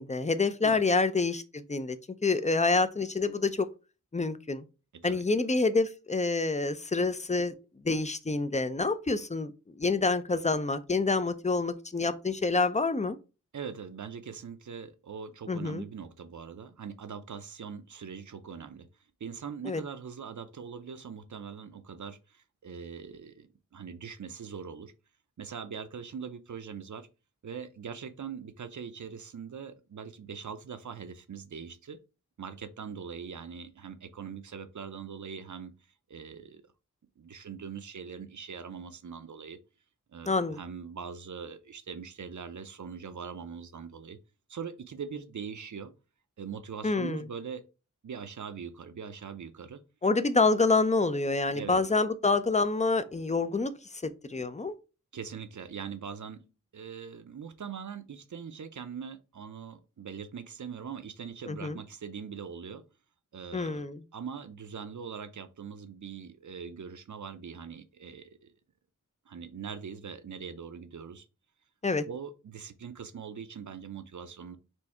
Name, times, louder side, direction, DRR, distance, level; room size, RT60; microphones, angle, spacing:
voice 1, 0.0-2.0 2.2-3.7 4.1-4.6 5.0-7.5 7.8-13.2 15.5-15.8 19.6-19.8 40.3-40.6 46.8-47.3 50.0-54.7 61.5-61.8 63.5-64.0 71.8-72.0, left 3 dB, 25° left, 0.5 m, -27 dB
voice 2, 13.5-18.9 19.2-24.9 25.4-27.1 27.4-32.0 32.4-35.7 36.1-36.6 37.2-39.6 40.1-44.2 44.5-45.9 46.4-47.6 48.0-49.8 51.5-51.8 55.1-56.4 56.7-62.8 63.3-63.8 64.1-68.5 69.3-71.3 72.1-74.6, right 6 dB, 70° right, 0.6 m, -42 dB
4.4 x 2.7 x 4.3 m
wide cardioid pair, 65°, 31 cm